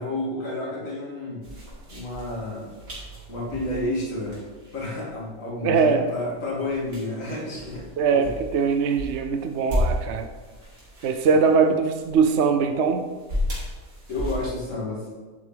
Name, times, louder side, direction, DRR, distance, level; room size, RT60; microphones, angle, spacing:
voice 1, 0.0-1.4 1.9-2.7 3.3-4.4 4.7-8.3 11.3-11.5 14.1-15.1, left 2 dB, 65° left, -4 dB, 2.7 m, -31 dB
sound 1, 1.4-14.7, left 1 dB, 80° right, 3.3 m, -34 dB
voice 2, 5.6-6.0 8.0-10.3 11.0-13.0, right 5 dB, 60° right, 6 dB, 0.8 m, -21 dB
11.0 x 8.1 x 3.4 m, 1.3 s
omnidirectional pair, 1.5 m